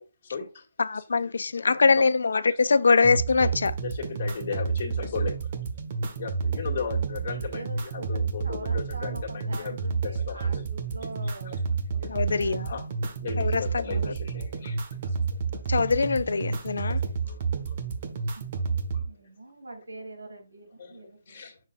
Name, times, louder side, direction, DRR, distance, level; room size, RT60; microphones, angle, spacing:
voice 1, 0.0-0.7 0.9-2.1 2.5-2.7 3.3-3.5 3.8-5.5 6.2-9.8 10.0-10.6 11.2-11.6 11.9-12.2 12.6-12.9 13.2-15.6 16.5-18.0 18.8-19.0 20.8-21.6, left 5 dB, 40° left, 2.1 m, -37 dB
voice 2, 0.8-3.7 12.1-12.7 13.4-13.6 15.7-17.0, left 4 dB, 65° left, 0.4 m, -23 dB
sound 1, 3.0-19.0, right 5 dB, 40° right, 1.4 m, -30 dB
voice 3, 6.7-7.1 7.5-12.8 13.8-14.0 18.3-18.4 18.9-21.5, right 2 dB, 80° right, 3.0 m, -44 dB
7.2 x 6.2 x 2.5 m
figure-of-eight pair, 140°, 0 cm